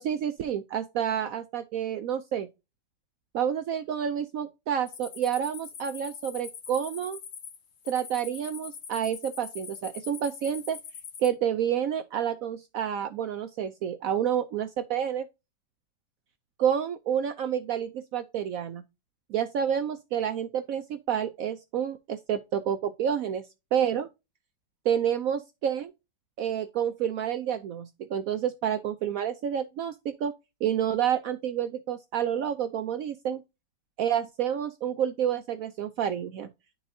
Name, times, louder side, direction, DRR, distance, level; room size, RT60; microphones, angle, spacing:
voice 1, 0.0-2.5 3.3-7.2 7.9-10.8 11.2-15.3 16.6-18.8 19.3-23.4 23.7-24.1 24.9-25.9 26.4-30.3 30.6-33.4 34.0-36.5, right 9 dB, 75° right, 0.8 m, -29 dB
sound 1, 4.9-11.3, left 7 dB, 85° left, 2.0 m, -43 dB
11.5 x 4.0 x 2.6 m
omnidirectional pair, 1.9 m